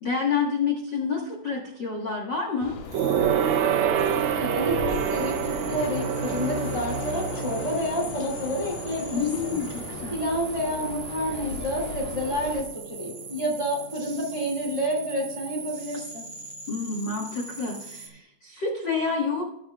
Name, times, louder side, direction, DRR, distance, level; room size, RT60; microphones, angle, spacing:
voice 1, 0.0-2.8 9.1-10.1 16.7-19.4, left 5 dB, 45° left, -1 dB, 1.5 m, -28 dB
sound 1, 2.6-12.6, left 4 dB, 85° left, 2.9 m, -37 dB
sound 2, 2.9-18.1, right 4 dB, 50° right, 2.7 m, -42 dB
Gong, 2.9-12.7 13.0-13.3 13.6-13.7, right 8 dB, 75° right, 1.7 m, -29 dB
voice 2, 4.3-9.6 10.1-16.2, equal, 10° right, -1 dB, 1.8 m, -29 dB
19.5 x 6.7 x 2.4 m, 0.83 s
omnidirectional pair, 3.9 m